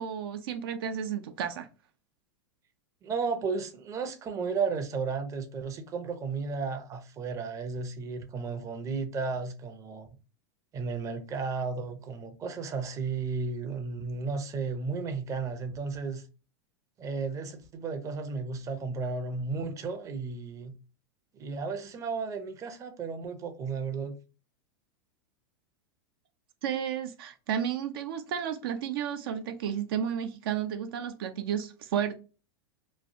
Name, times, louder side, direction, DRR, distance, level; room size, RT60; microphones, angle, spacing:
voice 1, 0.0-1.7 26.6-32.2, right 8 dB, 70° right, 0.5 m, -32 dB
voice 2, 3.0-10.1 10.7-16.2 17.0-20.7 21.3-24.1, right 4 dB, 25° right, 0.6 m, -34 dB
3.1 x 2.3 x 2.5 m
hypercardioid pair, 120°, 13 cm